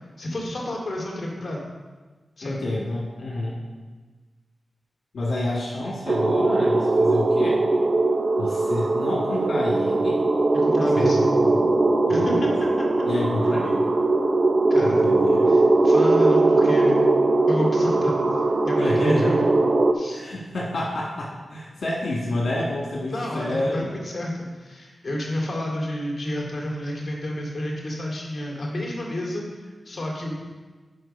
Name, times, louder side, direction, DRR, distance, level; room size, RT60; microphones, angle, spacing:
voice 1, 0.2-1.7 2.4-2.6 10.5-11.2 12.1-12.3 12.8-12.9 14.7-15.0 15.5-17.1 17.5-18.1 18.6-19.4 19.9-20.2 23.1-30.3, left 1 dB, 45° left, -2 dB, 2.5 m, -30 dB
voice 2, 2.4-3.6 5.1-7.6 8.4-10.2 10.9-11.7 12.1-12.5 13.1-13.8 14.8-15.5 18.8-19.3 20.1-23.9, left 1 dB, 75° left, -4 dB, 1.8 m, -28 dB
sound 1, 6.1-19.9, right 2 dB, 55° right, 0.7 m, -20 dB
7.8 x 5.5 x 5.4 m, 1.3 s
cardioid pair, 60°, 0 cm